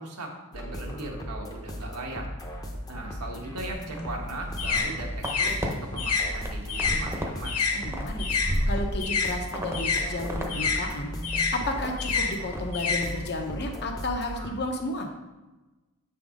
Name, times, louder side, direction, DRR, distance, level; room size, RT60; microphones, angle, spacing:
voice 1, 0.0-2.3 2.9-7.6, right 2 dB, 85° right, 1 dB, 1.4 m, -38 dB
sound 1, 0.5-14.5, equal, 15° left, 0.8 m, -37 dB
sound 2, 3.7-8.5 8.8-13.6, left 5 dB, 85° left, 1.8 m, -29 dB
sound 3, 4.5-5.7 6.1-7.3 7.6-9.1 9.5-9.8 10.1-10.5 10.8-10.9 11.3-11.9 12.3-12.6 12.9-13.2, equal, 10° right, 0.8 m, -32 dB
voice 2, 7.7-8.3 8.7-15.1, left 2 dB, 50° left, 3 dB, 1.1 m, -32 dB
7.3 x 5.8 x 3.7 m, 1.1 s
head